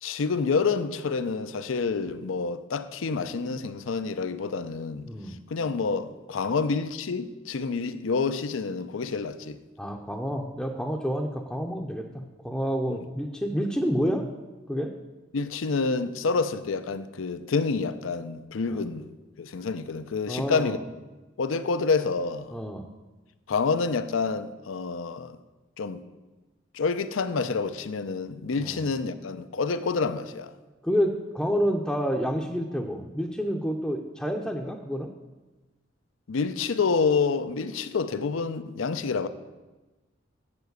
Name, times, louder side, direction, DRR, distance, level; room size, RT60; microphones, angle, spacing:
voice 1, 0.0-5.1 5.5-9.6 15.3-19.1 19.4-20.8 21.4-22.5 23.5-25.4 25.8-26.0 26.7-30.5 36.3-39.3, left 4 dB, 85° left, 0.5 m, -28 dB
voice 2, 9.8-14.3 14.7-14.9 18.7-18.9 20.3-20.8 22.5-22.8 28.6-28.8 30.8-35.1, equal, 5° left, 0.6 m, -29 dB
7.2 x 7.1 x 7.9 m
head